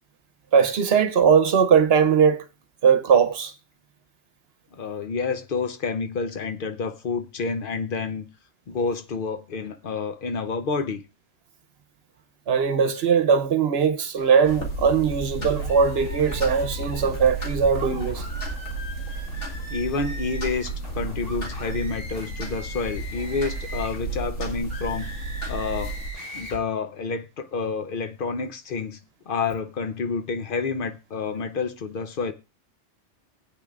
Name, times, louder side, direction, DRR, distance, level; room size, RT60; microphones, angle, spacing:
voice 1, 0.5-2.4 2.8-3.5 12.5-18.2, right 6 dB, 65° right, 1.0 m, -20 dB
voice 2, 4.7-8.3 8.7-11.0 19.7-25.1 25.5-25.9 26.3-29.0 29.3-32.3, left 4 dB, 50° left, 0.9 m, -29 dB
sound 1, 14.2-14.6 15.6-17.1 17.7-24.1 24.6-26.6, equal, 35° left, 5.9 m, -41 dB
sound 2, 14.5-26.1, right 2 dB, 80° left, 2.2 m, -32 dB
19.0 x 8.6 x 2.5 m
omnidirectional pair, 1.2 m